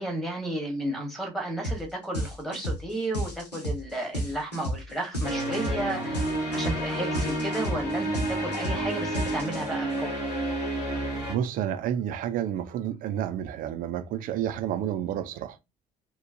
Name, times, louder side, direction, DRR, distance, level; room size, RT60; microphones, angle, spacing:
voice 1, 0.0-6.3 6.5-10.1, right 1 dB, ahead, 1.1 m, -33 dB
sound 1, 1.6-1.8 2.1-9.9, equal, 85° left, 0.6 m, -32 dB
sound 2, 5.2-11.4, right 1 dB, 70° left, 1.2 m, -30 dB
voice 2, 11.3-15.6, right 10 dB, 45° right, 0.4 m, -30 dB
3.0 x 2.1 x 2.5 m
figure-of-eight pair, 55°, 20 cm